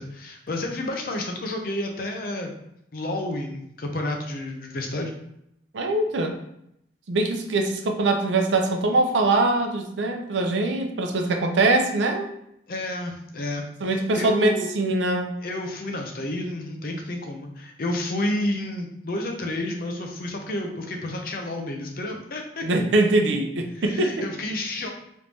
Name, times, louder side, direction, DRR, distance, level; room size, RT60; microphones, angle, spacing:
voice 1, 0.0-2.5 2.9-5.1 12.7-14.7 15.4-22.6 23.7-24.9, left 1 dB, 50° left, 2 dB, 0.5 m, -30 dB
voice 2, 5.7-6.4 7.1-12.3 13.8-15.3 22.6-24.2, right 2 dB, 80° right, 4 dB, 0.5 m, -23 dB
3.1 x 2.6 x 3.4 m, 0.78 s
head